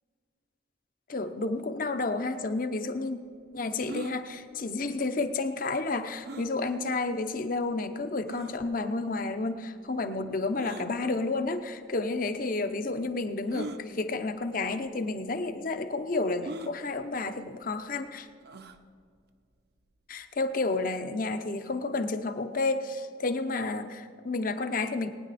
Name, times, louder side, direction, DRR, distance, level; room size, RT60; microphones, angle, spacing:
voice 1, 1.1-3.2 3.5-18.3 20.1-25.1, left 3 dB, 50° left, 9 dB, 0.8 m, -31 dB
sound 1, 3.9-4.2 6.2-6.5 7.3-7.4 8.3-8.5 10.6-10.9 11.9-12.0 13.5-13.8 14.7-14.9 15.2-15.3 16.4-16.7 18.4-18.8, right 1 dB, 55° right, 0.7 m, -40 dB
20.0 x 9.7 x 4.2 m, 2.2 s
head